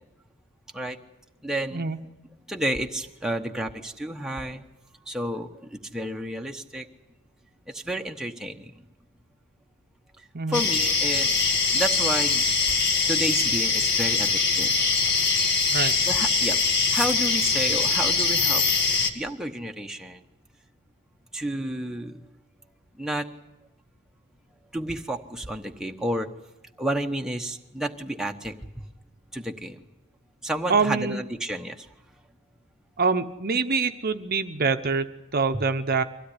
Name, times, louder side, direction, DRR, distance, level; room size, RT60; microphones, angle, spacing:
voice 1, 1.4-1.8 2.5-4.6 5.1-6.9 7.7-8.7 10.5-12.4 13.1-14.7 16.0-16.6 16.9-18.6 19.1-20.2 21.3-22.2 23.0-23.3 24.7-26.3 26.8-28.9 29.3-29.8 30.4-31.9 35.5-35.6, right 1 dB, 5° right, 3 dB, 1.0 m, -31 dB
sound 1, 10.5-19.1, left 4 dB, 50° left, 2.0 m, -23 dB
voice 2, 30.7-31.2 33.0-36.0, right 4 dB, 45° right, 8 dB, 0.9 m, -25 dB
24.0 x 16.5 x 10.0 m, 0.96 s
head